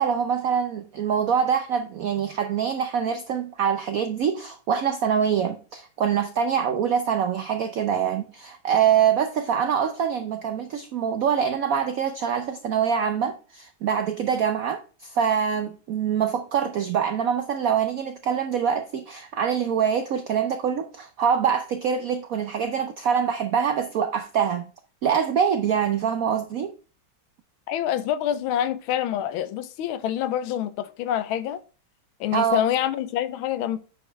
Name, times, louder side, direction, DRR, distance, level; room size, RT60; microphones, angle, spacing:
voice 1, 0.0-24.7 25.0-26.7 32.3-32.6, right 7 dB, 80° right, 0.7 m, -24 dB
voice 2, 27.7-31.6 32.2-33.8, left 10 dB, 85° left, 1.5 m, -26 dB
8.7 x 5.1 x 3.3 m
omnidirectional pair, 2.2 m